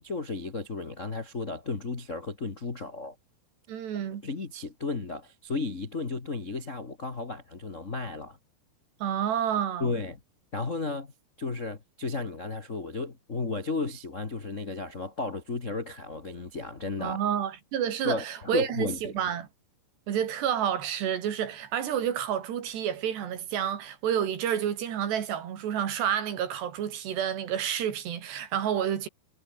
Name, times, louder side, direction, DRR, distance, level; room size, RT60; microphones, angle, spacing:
voice 1, 0.0-3.1 4.2-8.4 9.8-10.2 10.5-11.1 11.4-17.2 18.0-19.3, left 3 dB, 50° left, 0.9 m, -34 dB
voice 2, 3.7-4.2 9.0-9.9 17.0-19.5 20.1-29.1, right 9 dB, 75° right, 4.7 m, -29 dB
omnidirectional pair, 4.9 m